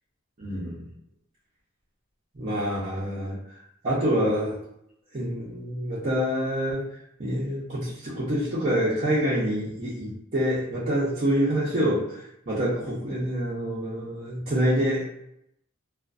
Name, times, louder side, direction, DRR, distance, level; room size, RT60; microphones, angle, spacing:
voice 1, 0.4-0.9 2.3-3.4 3.8-4.6 5.1-6.8 7.2-15.0, equal, 40° right, -10 dB, 0.7 m, -26 dB
2.4 x 2.4 x 2.4 m, 0.78 s
head